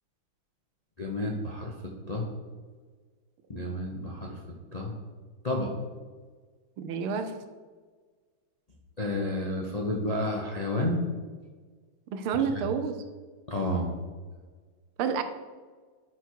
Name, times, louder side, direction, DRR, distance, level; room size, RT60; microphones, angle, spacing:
voice 1, 1.0-1.7 2.1-2.3 3.5-4.4 4.7-4.9 5.4-5.7 9.0-11.0 12.3-12.6 13.5-13.9, left 1 dB, 45° left, -1 dB, 0.5 m, -30 dB
voice 2, 6.8-7.4 12.1-13.0 15.0-15.2, right 6 dB, 90° right, 8 dB, 1.6 m, -29 dB
12.0 x 4.6 x 4.6 m, 1.5 s
omnidirectional pair, 2.3 m